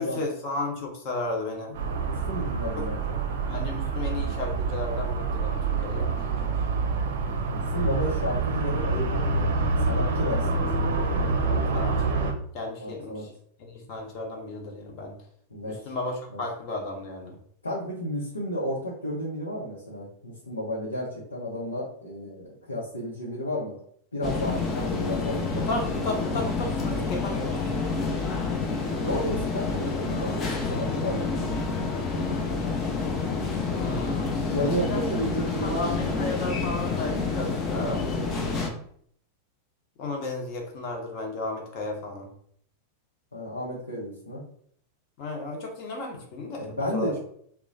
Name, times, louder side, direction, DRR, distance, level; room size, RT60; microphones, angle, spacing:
voice 1, 0.0-1.8 2.8-2.9 3.5-6.2 11.4-13.2 13.6-15.1 15.6-17.4 25.6-27.6 33.7-35.0 35.6-38.0 40.0-42.3 45.2-47.1, left 2 dB, 40° left, 2 dB, 1.0 m, -34 dB
sound 1, 1.7-12.3, right 3 dB, 55° right, 0.5 m, -27 dB
voice 2, 2.0-3.0 7.5-9.5 9.8-11.7 12.8-13.3 15.5-15.9 16.3-16.4 17.6-23.8 24.1-25.7 29.0-31.3 34.5-36.2 43.3-44.4 46.6-47.2, equal, 80° left, -6 dB, 0.8 m, -32 dB
sound 2, 24.2-38.7, left 4 dB, 25° left, 0.6 m, -28 dB
2.9 x 2.3 x 3.8 m, 0.63 s
figure-of-eight pair, 90°, 0 cm